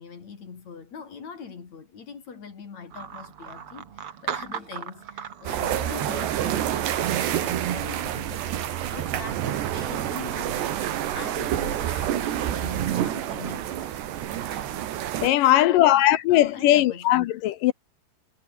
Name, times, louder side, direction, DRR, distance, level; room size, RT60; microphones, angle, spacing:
voice 1, 0.0-14.7 15.5-17.3, left 5 dB, 45° left, 4.1 m, -42 dB
sound 1, 2.9-10.8, right 8 dB, 50° right, 1.9 m, -41 dB
sound 2, 5.5-15.3, right 11 dB, 85° right, 4.2 m, -28 dB
voice 2, 15.2-17.7, left 14 dB, 75° left, 2.0 m, -19 dB
omnidirectional pair, 4.7 m